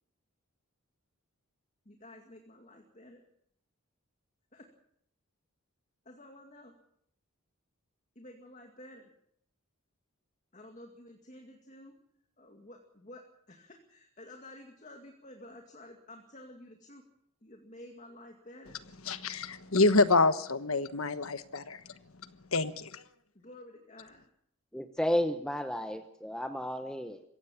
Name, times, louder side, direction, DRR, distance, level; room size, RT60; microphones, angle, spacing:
voice 1, 1.9-3.2 4.5-4.7 6.1-6.7 8.2-9.1 10.5-11.9 12.4-13.2 13.5-17.0 17.4-18.8 23.3-24.2, left 1 dB, 35° left, 2.2 m, -51 dB
voice 2, 19.0-21.8 22.5-23.0, left 3 dB, 75° left, 1.3 m, -27 dB
voice 3, 24.7-27.2, equal, 5° left, 0.9 m, -32 dB
23.0 x 17.0 x 7.2 m
head